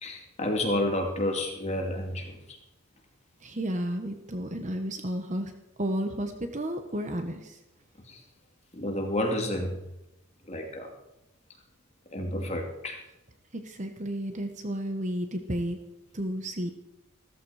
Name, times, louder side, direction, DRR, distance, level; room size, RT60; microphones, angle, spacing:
voice 1, 0.0-2.6 8.1-8.2 8.7-9.8 10.5-10.9 12.1-13.0, left 1 dB, 30° left, 1 dB, 2.4 m, -30 dB
voice 2, 3.4-5.5 5.8-7.6 13.5-15.8 16.1-16.7, equal, 35° right, 6 dB, 1.1 m, -32 dB
15.5 x 14.0 x 4.9 m, 0.89 s
head